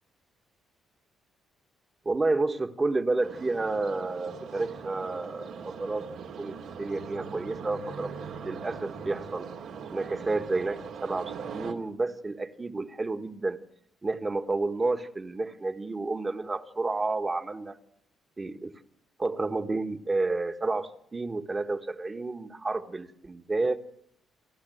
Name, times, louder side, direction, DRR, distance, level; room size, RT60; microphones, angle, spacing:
voice 1, 2.0-8.1 8.4-9.5 9.9-13.6 14.0-17.8 18.4-18.7 19.2-23.8, right 3 dB, 25° right, 9 dB, 1.4 m, -30 dB
sound 1, 3.2-11.7, right 6 dB, 80° right, 2.5 m, -41 dB
29.5 x 11.5 x 7.8 m, 0.73 s
cardioid pair, 90°, 0 cm